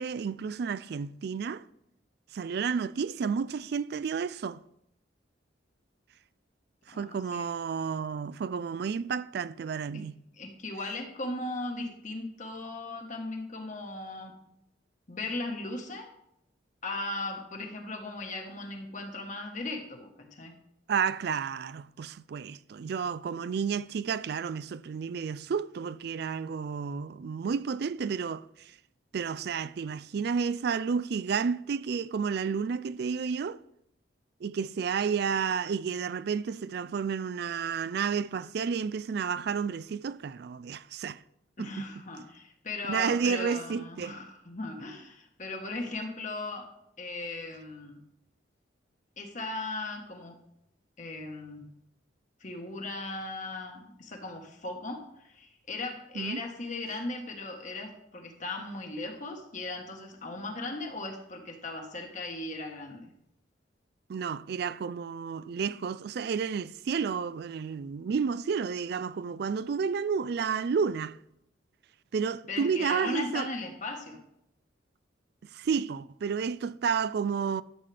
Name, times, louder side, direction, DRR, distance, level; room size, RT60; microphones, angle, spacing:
voice 1, 0.0-1.6 2.3-4.6 6.9-10.2 20.9-28.8 29.1-33.6 34.4-41.2 41.6-41.8 42.9-44.2 56.2-56.4 64.1-71.2 72.1-73.5 75.5-77.6, right 6 dB, 55° right, 0.3 m, -31 dB
voice 2, 6.9-7.5 10.4-14.3 15.1-16.1 16.8-20.6 41.6-46.7 47.0-48.0 49.2-50.4 51.0-51.7 52.4-63.1 72.5-74.2, left 2 dB, 40° left, 1.3 m, -37 dB
12.5 x 7.4 x 3.4 m
head